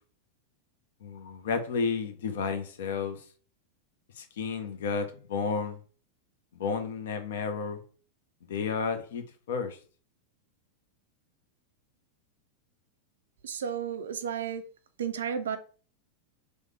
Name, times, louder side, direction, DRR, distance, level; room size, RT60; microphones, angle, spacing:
voice 1, 1.0-3.2 4.2-5.8 6.5-7.8 8.5-9.8, left 5 dB, 60° left, 0.5 m, -32 dB
voice 2, 13.4-14.6 15.0-15.6, right 7 dB, 65° right, 0.4 m, -32 dB
3.2 x 2.1 x 3.1 m
figure-of-eight pair, 90°, 0 cm